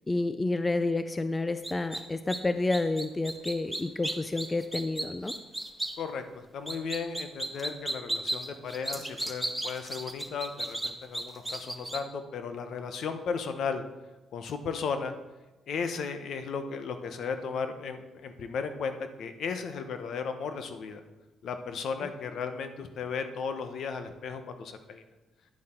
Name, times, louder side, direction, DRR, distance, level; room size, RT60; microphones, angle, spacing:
voice 1, 0.1-5.3, left 2 dB, 20° left, 10 dB, 0.4 m, -29 dB
sound 1, 1.6-2.0 2.3-2.4 2.7-5.9 6.7-12.0, right 1 dB, 5° right, 1.0 m, -34 dB
voice 2, 6.0-13.8 14.3-15.1 15.7-21.0 21.4-25.0, left 5 dB, 65° left, 8 dB, 1.0 m, -35 dB
10.0 x 7.5 x 4.5 m, 1.1 s
cardioid pair, 120°, 0 cm